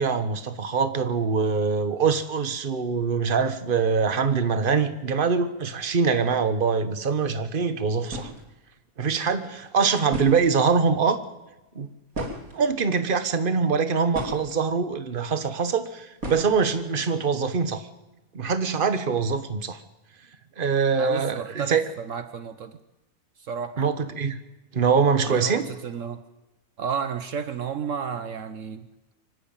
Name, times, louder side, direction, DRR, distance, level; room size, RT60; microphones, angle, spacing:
voice 1, 0.0-8.3 9.0-11.2 11.7-11.9 12.2-12.3 12.5-17.9 18.3-19.8 20.6-21.8 23.8-24.4 24.7-25.7, right 5 dB, 40° right, 11 dB, 1.4 m, -24 dB
sound 1, 7.7-7.8 8.0-8.5 9.7-9.8 10.1-10.9 12.1-12.9 13.7-14.6 16.2-16.8, equal, 85° right, 3.7 m, -35 dB
voice 2, 21.0-22.8 23.4-23.9 25.3-26.2 26.8-28.9, right 7 dB, 70° right, 11 dB, 1.3 m, -32 dB
24.5 x 13.0 x 9.0 m, 0.99 s
omnidirectional pair, 1.4 m